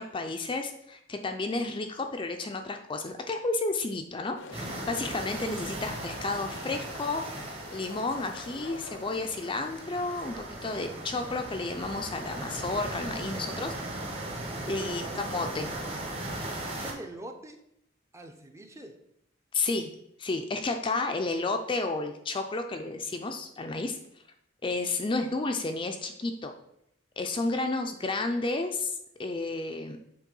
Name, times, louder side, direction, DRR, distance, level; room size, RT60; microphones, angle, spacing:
voice 1, 0.0-7.2 7.7-13.8 14.7-15.0 15.3-15.7 19.5-19.9 20.2-24.0 24.6-26.5 27.2-30.0, left 3 dB, 25° left, 5 dB, 0.5 m, -31 dB
sound 1, 4.4-10.8, left 3 dB, 75° left, 0.7 m, -47 dB
sound 2, 4.5-16.9, right 1 dB, 30° right, 1.3 m, -38 dB
voice 2, 14.5-15.4 16.2-17.6 18.1-19.0, right 1 dB, 15° right, 5 dB, 0.6 m, -44 dB
7.4 x 3.1 x 5.3 m, 0.76 s
head